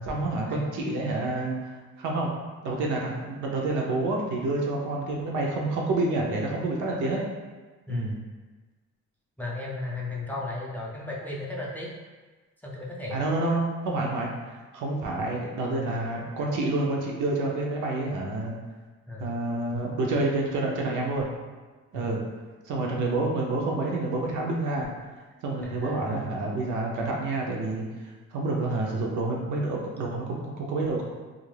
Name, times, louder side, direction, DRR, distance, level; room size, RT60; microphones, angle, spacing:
voice 1, 0.0-2.3 2.6-7.2 7.9-8.1 13.1-18.5 19.2-21.3 21.9-22.2 22.7-24.9 25.4-27.8 28.3-31.0, right 2 dB, 75° right, -1 dB, 0.6 m, -28 dB
voice 2, 7.9-8.2 9.4-11.9 12.6-13.2 19.1-19.3 21.9-22.1 25.6-26.1, left 2 dB, 5° left, -4 dB, 0.4 m, -35 dB
2.4 x 2.0 x 3.2 m, 1.3 s
cardioid pair, 90°, 30 cm